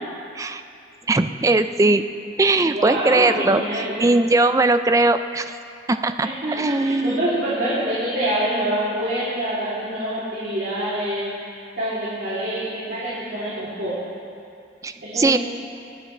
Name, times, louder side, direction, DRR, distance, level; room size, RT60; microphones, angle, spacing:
voice 1, 1.1-2.0 2.4-5.5 5.9-7.2 14.8-15.4, right 2 dB, 15° right, 9 dB, 0.4 m, -19 dB
voice 2, 2.6-4.0 6.2-11.2 11.8-14.0 15.0-15.4, right 1 dB, 55° right, -11 dB, 3.1 m, -26 dB
25.0 x 9.8 x 3.3 m, 2.5 s
head